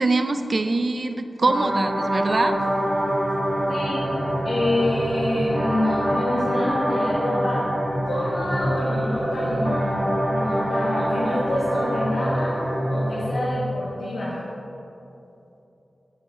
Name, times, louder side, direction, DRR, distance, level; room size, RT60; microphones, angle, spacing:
voice 1, 0.0-2.6, right 3 dB, 45° right, 9 dB, 0.4 m, -23 dB
sound 1, 1.4-13.4, equal, 15° right, 1.3 m, -25 dB
voice 2, 3.7-4.0 4.4-7.6 8.0-10.0 10.3-12.6 12.9-14.4, left 1 dB, 80° left, -9 dB, 1.5 m, -27 dB
6.9 x 6.8 x 4.1 m, 2.9 s
wide cardioid pair, 100°, 0 cm